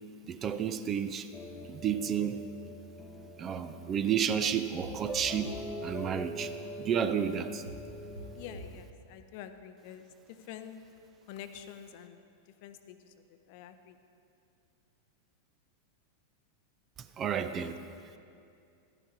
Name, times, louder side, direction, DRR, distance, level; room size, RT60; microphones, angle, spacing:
voice 1, 0.3-1.3 1.7-2.4 3.4-5.5 5.8-6.5 6.8-7.6 17.2-17.8, right 8 dB, 25° right, 11 dB, 0.5 m, -31 dB
sound 1, 1.3-8.6, equal, 15° left, 0.8 m, -44 dB
sound 2, 4.8-5.8 7.7-8.9, right 1 dB, 80° right, 1.0 m, -46 dB
voice 2, 8.3-10.1 10.5-10.8 11.3-12.2 12.6-13.0 13.5-14.0 17.6-17.8, left 9 dB, 50° left, 9 dB, 0.6 m, -46 dB
12.0 x 11.0 x 4.4 m, 2.5 s
figure-of-eight pair, 90°, 0 cm